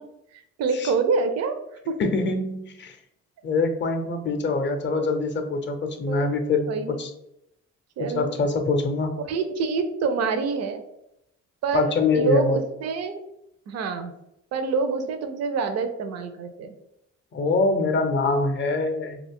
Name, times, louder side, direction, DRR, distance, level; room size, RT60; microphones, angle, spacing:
voice 1, 0.3-1.6 1.9-2.0 4.9-5.0 6.1-6.3 6.7-7.0 8.0-8.3 9.3-10.8 11.6-13.2 13.7-14.1 14.5-16.7, right 4 dB, 60° right, 8 dB, 0.5 m, -26 dB
voice 2, 2.0-2.9 3.4-7.1 8.0-9.1 11.7-12.6 17.3-19.2, left 3 dB, 40° left, 6 dB, 0.5 m, -24 dB
2.3 x 2.1 x 3.5 m, 0.80 s
cardioid pair, 90°, 30 cm